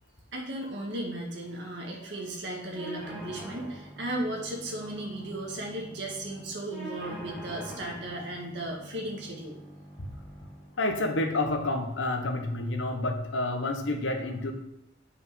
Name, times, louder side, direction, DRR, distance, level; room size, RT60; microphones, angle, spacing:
voice 1, 0.3-9.6, right 1 dB, 60° right, -1 dB, 2.0 m, -35 dB
sound 1, 2.7-10.7, right 1 dB, ahead, 1.7 m, -45 dB
voice 2, 10.8-14.5, left 2 dB, 70° left, 5 dB, 1.1 m, -29 dB
8.2 x 5.1 x 5.6 m, 0.82 s
head